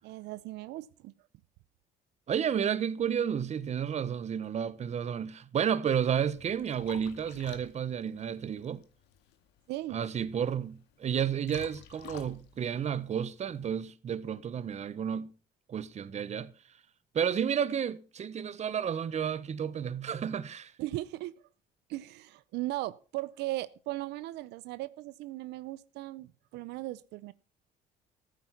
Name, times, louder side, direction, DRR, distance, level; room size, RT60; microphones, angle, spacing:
voice 1, 0.0-1.1 9.7-10.0 20.8-21.3 21.9-27.3, right 17 dB, 85° right, 0.6 m, -37 dB
voice 2, 2.3-8.8 9.9-15.3 15.7-16.5 17.1-20.7, right 8 dB, 40° right, 1.1 m, -31 dB
Liquid, 6.0-13.7, left 9 dB, 85° left, 2.1 m, -53 dB
15.0 x 9.2 x 5.8 m
cardioid pair, 110°, 17 cm